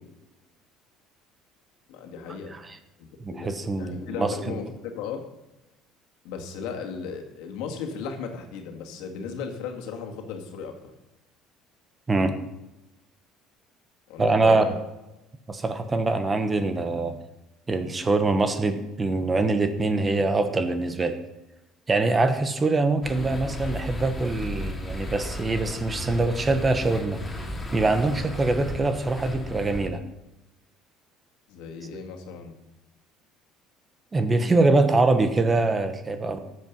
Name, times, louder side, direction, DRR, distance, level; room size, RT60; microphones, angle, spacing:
voice 1, 1.9-2.6 3.0-5.2 6.2-10.9 14.1-14.7 31.5-32.6, left 6 dB, 80° left, 2 dB, 2.1 m, -36 dB
voice 2, 3.2-4.6 12.1-12.3 14.2-14.7 15.5-17.2 17.7-21.2 21.9-27.2 27.7-30.0 34.1-36.4, right 3 dB, 20° right, 9 dB, 1.1 m, -24 dB
sound 1, 23.0-29.9, left 1 dB, 10° left, 2.4 m, -35 dB
13.5 x 7.8 x 5.5 m, 0.98 s
cardioid pair, 115°, 0 cm